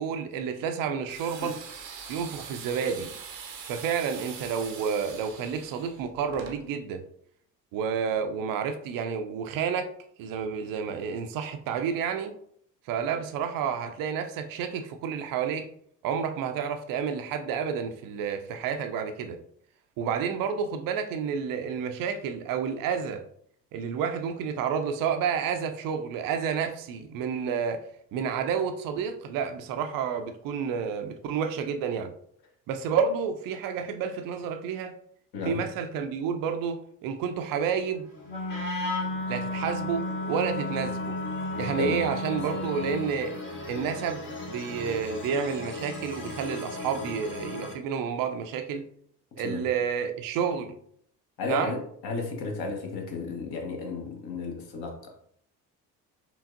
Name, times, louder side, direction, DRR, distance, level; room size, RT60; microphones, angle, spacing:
voice 1, 0.0-1.5 2.1-3.1 3.7-7.0 7.7-9.9 10.2-12.3 12.9-15.7 16.0-19.4 20.0-23.2 23.7-27.8 28.1-32.1 32.7-34.9 35.5-38.1 39.3-41.1 41.6-43.3 43.7-48.9 49.4-50.7 51.5-51.8, right 7 dB, 45° right, 7 dB, 0.5 m, -30 dB
sound 1, 1.1-6.6, right 6 dB, 80° right, 0.7 m, -43 dB
voice 2, 35.3-35.7 41.8-42.0 49.4-49.7 51.4-55.1, left 3 dB, 50° left, 2 dB, 1.1 m, -33 dB
sound 2, 37.8-47.7, left 2 dB, 25° left, 1.1 m, -39 dB
Wind instrument woodwind instrument, 38.2-43.1, left 2 dB, 80° left, 1.4 m, -33 dB
4.4 x 3.4 x 2.6 m, 0.66 s
figure-of-eight pair, 55°, 49 cm